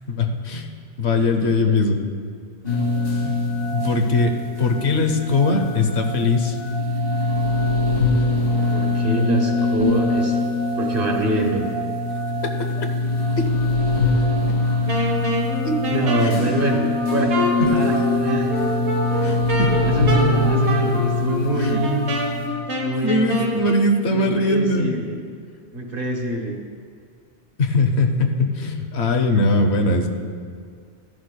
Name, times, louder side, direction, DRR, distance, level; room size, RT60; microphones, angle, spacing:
voice 1, 0.1-0.7 1.0-2.0 3.2-3.4 3.7-6.6 12.4-12.9 13.4-13.5 14.5-14.6 15.6-15.8 16.2-16.4 19.2-19.8 20.1-20.2 21.5-21.8 23.0-24.9 27.6-30.1, left 2 dB, 75° left, 5 dB, 1.1 m, -21 dB
sound 1, 2.6-22.5, left 2 dB, 60° left, 2.6 m, -23 dB
voice 2, 8.7-10.4 10.8-11.6 15.9-16.8 17.1-17.3 17.7-18.5 19.8-22.0 22.8-23.7 24.1-25.2 25.7-26.6, right 2 dB, 55° right, 2 dB, 1.4 m, -24 dB
Wind instrument woodwind instrument, 14.9-23.9, equal, 85° right, 1.5 m, -27 dB
14.5 x 11.0 x 2.2 m, 2.1 s
omnidirectional pair, 1.1 m